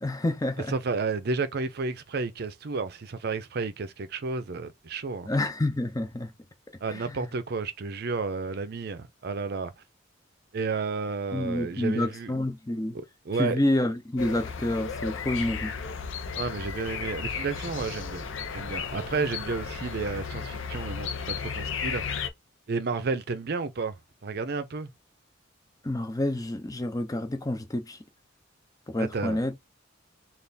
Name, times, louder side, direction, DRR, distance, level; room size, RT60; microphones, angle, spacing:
voice 1, 0.0-0.7 5.3-6.3 6.9-7.2 11.3-13.0 13.4-15.7 25.8-28.0 28.9-29.5, left 1 dB, 20° left, 0.6 m, -28 dB
voice 2, 0.7-5.3 6.8-9.7 10.5-12.3 13.3-13.6 16.4-18.3 18.5-22.0 22.7-24.0 24.2-24.9 29.0-29.4, right 4 dB, 55° right, 0.5 m, -31 dB
sound 1, 14.2-22.3, left 6 dB, 75° left, 0.6 m, -34 dB
3.4 x 2.5 x 4.0 m
head